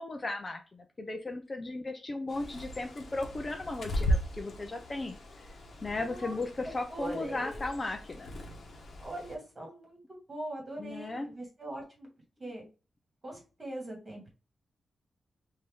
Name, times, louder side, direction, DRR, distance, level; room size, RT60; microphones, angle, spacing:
voice 1, 0.0-5.2 5.8-8.3 10.8-11.3 12.4-12.5, left 2 dB, 25° left, 5 dB, 0.5 m, -36 dB
Bird, 2.3-9.3, equal, 50° left, 1.2 m, -37 dB
voice 2, 5.9-6.4 6.9-7.6 9.0-10.0 10.3-12.1 12.4-12.6 13.2-14.3, right 1 dB, 25° right, 0 dB, 1.8 m, -41 dB
5.5 x 2.7 x 3.5 m, 0.33 s
wide cardioid pair, 170°, 0 cm